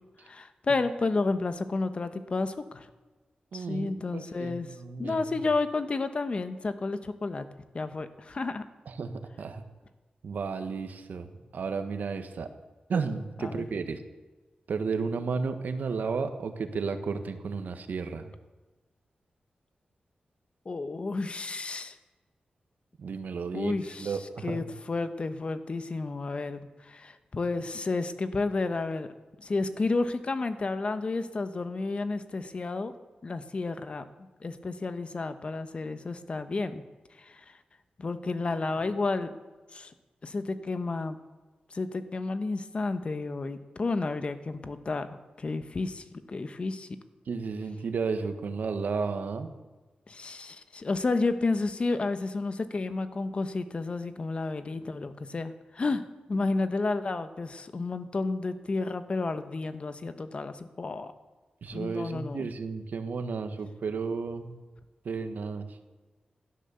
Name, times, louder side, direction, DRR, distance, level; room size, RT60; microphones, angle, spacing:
voice 1, 0.2-2.9 3.5-4.7 5.0-7.4 7.7-8.7 13.4-13.7 20.6-22.0 23.5-29.1 29.4-32.9 33.2-34.1 34.4-36.8 37.2-37.5 38.0-39.3 39.7-39.9 40.2-41.2 41.7-45.1 45.4-46.9 50.1-56.0 56.3-61.1 61.7-62.5, left 3 dB, 40° left, 10 dB, 1.1 m, -31 dB
voice 2, 3.5-5.3 8.9-9.1 9.4-9.6 10.2-11.3 11.5-12.5 12.9-14.0 14.7-18.3 23.0-23.7 24.0-24.6 47.3-49.5 61.6-64.5 65.0-65.7, right 5 dB, 85° right, 8 dB, 1.4 m, -33 dB
17.0 x 12.0 x 7.0 m, 1.2 s
wide cardioid pair, 130°, 3 cm